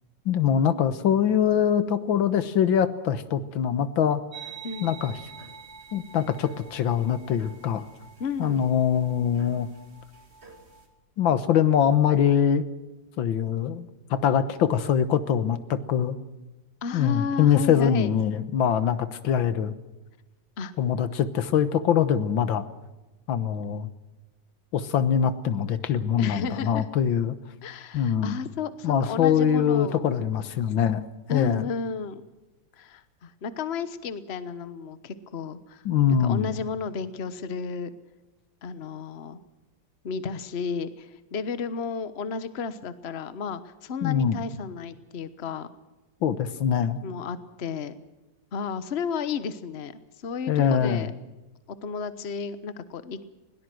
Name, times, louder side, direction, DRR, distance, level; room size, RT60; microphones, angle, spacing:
voice 1, 0.3-4.2 4.8-5.2 5.9-7.8 8.4-9.7 11.2-12.6 13.2-16.2 16.9-19.7 20.8-22.7 23.3-23.9 24.7-27.4 27.9-28.4 28.8-31.0 31.3-31.6 35.9-36.5 44.0-44.4 46.2-47.0 50.5-51.1, left 8 dB, 85° left, 13 dB, 1.9 m, -23 dB
sound 1, 4.3-10.9, right 6 dB, 35° right, 3.1 m, -46 dB
voice 2, 4.6-4.9 8.2-8.7 16.8-18.1 20.6-20.7 26.2-26.8 27.6-30.0 31.3-32.3 32.8-35.8 36.2-37.9 38.6-39.4 40.0-45.7 47.0-47.9 48.5-51.1 51.8-53.2, left 5 dB, 40° left, 13 dB, 1.2 m, -33 dB
21.0 x 18.0 x 7.8 m, 1.1 s
omnidirectional pair, 2.1 m